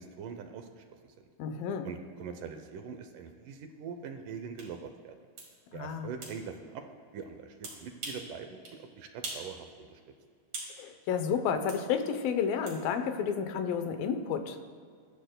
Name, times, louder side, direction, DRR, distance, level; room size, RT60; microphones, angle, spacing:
voice 1, 0.0-1.3 1.8-5.2 5.7-6.8 7.1-10.0, right 6 dB, 75° right, 6 dB, 2.2 m, -43 dB
voice 2, 1.4-1.9 5.7-6.1 10.8-14.6, left 7 dB, 80° left, 8 dB, 2.6 m, -31 dB
sound 1, 4.6-4.7 5.4-5.5 6.2-6.4 7.6-8.3 8.6-8.8 9.2-9.5 9.8-10.8 11.7-11.8 12.7-12.8, right 3 dB, 50° right, 3.7 m, -41 dB
23.0 x 12.5 x 2.2 m, 2.1 s
omnidirectional pair, 4.1 m